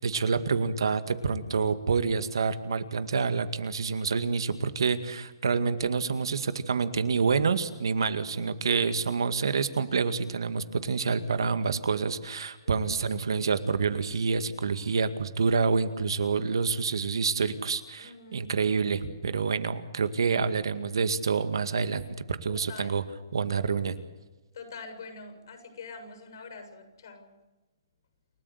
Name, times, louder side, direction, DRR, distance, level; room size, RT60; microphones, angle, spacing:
voice 1, 0.0-22.0 22.3-23.0 23.3-24.0, right 5 dB, 80° right, 11 dB, 2.1 m, -27 dB
voice 2, 18.0-18.7 22.5-23.0 24.5-27.3, left 4 dB, 65° left, 7 dB, 7.2 m, -45 dB
29.0 x 14.5 x 8.2 m, 1.1 s
hypercardioid pair, 155°, 2 cm